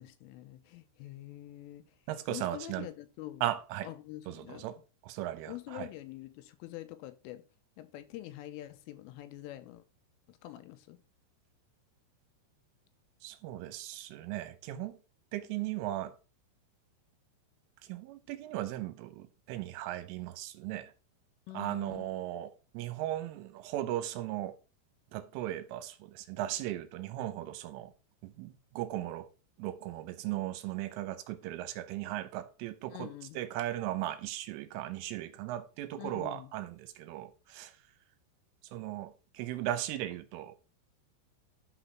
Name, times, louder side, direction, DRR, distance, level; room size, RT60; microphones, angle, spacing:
voice 1, 0.0-1.8 2.3-3.4 3.8-4.7 5.5-7.5 7.8-9.8 10.3-11.0 21.5-22.0 32.9-33.4 36.0-36.5, left 15 dB, 80° left, 3.3 m, -45 dB
voice 2, 2.1-2.9 3.4-3.9 4.3-4.8 5.0-5.9 13.2-15.0 15.3-16.1 17.9-20.9 21.5-24.6 25.1-27.9 28.2-29.3 29.6-33.1 33.4-37.7 38.7-40.6, right 13 dB, 80° right, 3.3 m, -37 dB
11.5 x 4.0 x 5.9 m
omnidirectional pair, 5.9 m